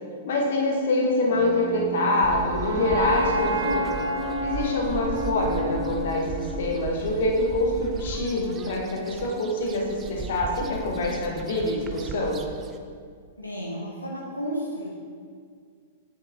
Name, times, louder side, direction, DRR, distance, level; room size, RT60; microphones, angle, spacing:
voice 1, 0.2-4.0 4.4-12.4, left 2 dB, 55° left, -1 dB, 1.3 m, -25 dB
sound 1, 1.2-7.4, equal, 65° right, 1.2 m, -30 dB
sound 2, 2.2-12.8, right 5 dB, 25° right, 0.5 m, -37 dB
voice 2, 13.4-14.9, equal, 85° left, -3 dB, 1.1 m, -32 dB
7.5 x 6.2 x 3.6 m, 2.1 s
figure-of-eight pair, 105°, 0 cm